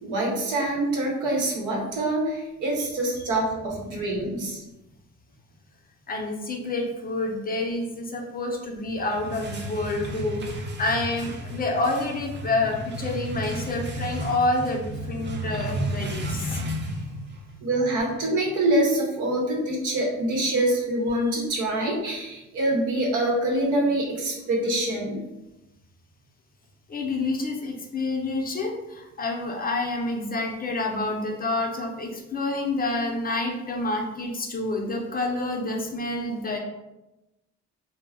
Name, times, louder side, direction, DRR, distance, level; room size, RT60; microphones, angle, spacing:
voice 1, 0.0-4.6 17.6-25.2, right 1 dB, 90° right, -1 dB, 0.8 m, -25 dB
voice 2, 6.1-17.6 20.4-20.6 26.9-36.6, left 2 dB, 30° left, 1 dB, 0.5 m, -28 dB
sound 1, 8.9-17.5, right 1 dB, 35° right, 0.5 m, -35 dB
2.2 x 2.0 x 3.4 m, 0.98 s
cardioid pair, 90°, 30 cm